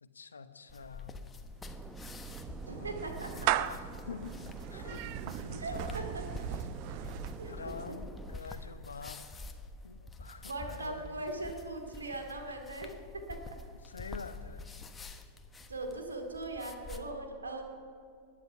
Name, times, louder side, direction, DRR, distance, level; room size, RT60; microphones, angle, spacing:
voice 1, 0.0-1.3 2.7-4.4 4.7-6.1 7.5-9.3 9.8-11.3 13.8-14.7, left 5 dB, 85° left, 11 dB, 0.9 m, -47 dB
sound 1, 0.7-17.0, left 3 dB, 15° left, 1.2 m, -47 dB
sound 2, 1.6-8.4, right 2 dB, 5° right, 1.0 m, -48 dB
Clapping / Meow, 1.6-8.0, right 14 dB, 50° right, 0.5 m, -38 dB
voice 2, 2.7-3.5 5.6-6.2 6.9-7.6 7.9-8.0 8.4-8.7 10.4-12.9 13.3-13.4 15.7-17.6, right 2 dB, 85° right, 3 dB, 2.4 m, -40 dB
20.0 x 10.5 x 5.8 m, 2.3 s
figure-of-eight pair, 95°, 0 cm